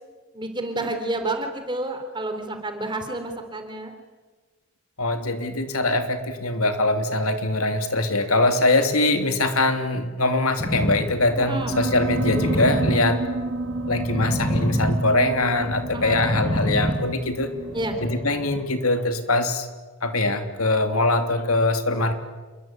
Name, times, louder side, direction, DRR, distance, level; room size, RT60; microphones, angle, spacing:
voice 1, 0.3-3.9 11.4-11.8 15.9-16.5 17.7-18.0, right 2 dB, 20° right, 6 dB, 3.9 m, -30 dB
voice 2, 5.0-13.2 13.9-17.5 18.0-19.7 20.0-22.2, left 2 dB, 85° left, 7 dB, 3.0 m, -22 dB
sound 1, 10.6-18.6, equal, 20° left, 7.6 m, -29 dB
Piano, 11.7-17.9, right 2 dB, 55° right, 1.6 m, -31 dB
28.5 x 22.5 x 9.3 m, 1.3 s
head